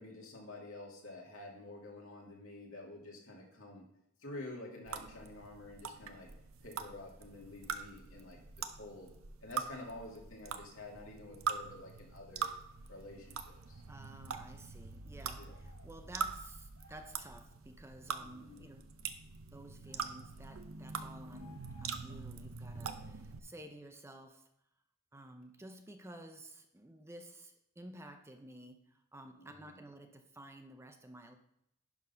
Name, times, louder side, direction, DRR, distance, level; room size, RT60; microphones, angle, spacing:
voice 1, 0.0-3.9 4.2-6.3 6.6-8.4 8.7-9.1 9.4-12.5 12.9-13.8 15.4-15.5 18.2-18.6 22.7-23.1 29.4-29.8, left 2 dB, 70° left, -1 dB, 2.4 m, -49 dB
sound 1, 4.9-23.4, right 6 dB, 70° right, 0.7 m, -43 dB
voice 2, 13.9-18.9 19.5-24.5 25.1-31.4, right 1 dB, 10° right, 6 dB, 0.5 m, -53 dB
sound 2, 15.4-15.9 16.7-17.3 19.8-20.3 21.3-22.1, left 3 dB, 90° left, 2.7 m, -62 dB
10.5 x 3.9 x 5.6 m, 0.81 s
head